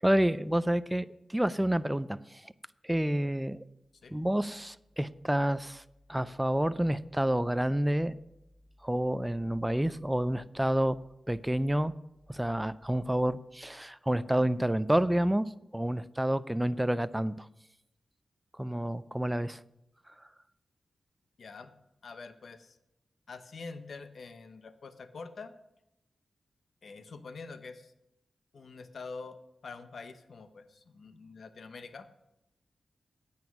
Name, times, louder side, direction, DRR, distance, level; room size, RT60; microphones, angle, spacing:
voice 1, 0.0-2.2 2.4-2.5 2.8-3.6 4.1-5.8 6.1-8.1 8.8-11.0 11.3-11.9 12.3-17.5 18.6-19.6, right 1 dB, 10° right, 15 dB, 0.4 m, -29 dB
voice 2, 21.4-21.7 22.0-22.8 23.3-25.5 26.8-27.9 28.5-32.1, left 4 dB, 70° left, 10 dB, 0.9 m, -45 dB
9.4 x 8.9 x 6.1 m, 0.89 s
wide cardioid pair, 85°, 0 cm